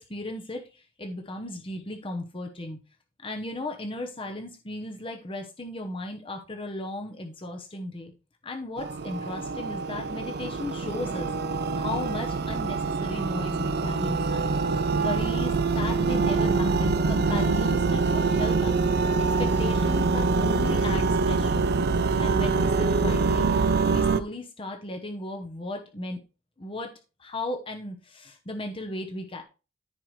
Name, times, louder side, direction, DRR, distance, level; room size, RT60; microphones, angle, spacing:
voice 1, 0.0-2.8 3.2-8.1 8.4-11.3 11.7-14.5 15.0-18.8 19.2-21.7 22.2-23.5 23.9-26.2 26.6-26.9 27.2-29.4, left 2 dB, 30° left, 3 dB, 0.9 m, -36 dB
sound 1, 8.8-24.2, right 4 dB, 55° right, 0.6 m, -25 dB
14.0 x 4.7 x 3.2 m, 0.32 s
head